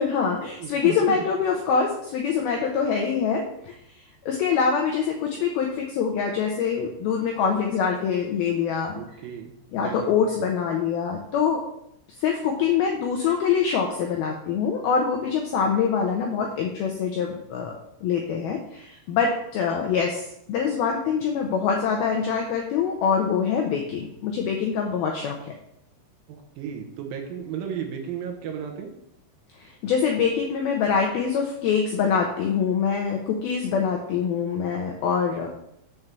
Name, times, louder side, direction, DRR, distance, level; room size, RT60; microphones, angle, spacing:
voice 1, 0.0-3.8 4.3-9.0 9.7-11.6 12.2-25.5 29.6-35.5, left 6 dB, 90° left, 1 dB, 2.1 m, -24 dB
voice 2, 0.6-1.2 8.9-9.5 9.8-10.1 26.3-28.9, right 8 dB, 85° right, 2 dB, 2.0 m, -34 dB
7.2 x 4.7 x 6.7 m, 0.77 s
omnidirectional pair, 5.5 m